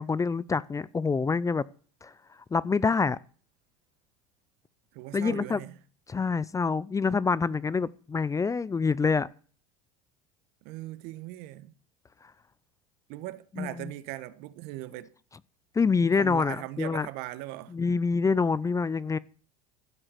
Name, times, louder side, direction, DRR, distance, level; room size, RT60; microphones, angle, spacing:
voice 1, 0.0-1.6 2.0-2.1 2.5-3.2 5.1-5.6 6.1-9.3 13.6-13.9 15.8-17.1 17.7-19.2, left 5 dB, 20° left, 0.6 m, -26 dB
voice 2, 4.9-5.8 10.6-11.7 13.1-15.1 16.1-17.7, right 16 dB, 65° right, 1.3 m, -39 dB
14.5 x 7.9 x 7.7 m
hypercardioid pair, 80°, 17 cm